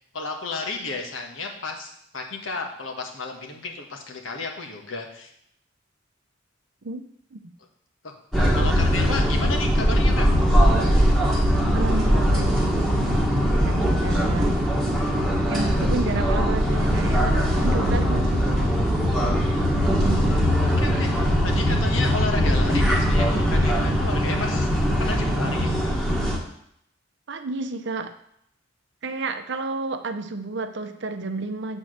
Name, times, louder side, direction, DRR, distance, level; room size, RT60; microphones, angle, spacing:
voice 1, 0.1-5.3 8.0-8.1 8.5-10.3 20.0-25.7, left 3 dB, 80° left, 2 dB, 1.4 m, -33 dB
sound 1, 8.3-26.4, equal, ahead, 1.3 m, -21 dB
voice 2, 11.7-13.2 13.5-14.7 15.5-18.7 27.3-28.1 29.0-31.8, right 3 dB, 60° right, 8 dB, 0.7 m, -31 dB
7.7 x 4.4 x 6.5 m, 0.71 s
head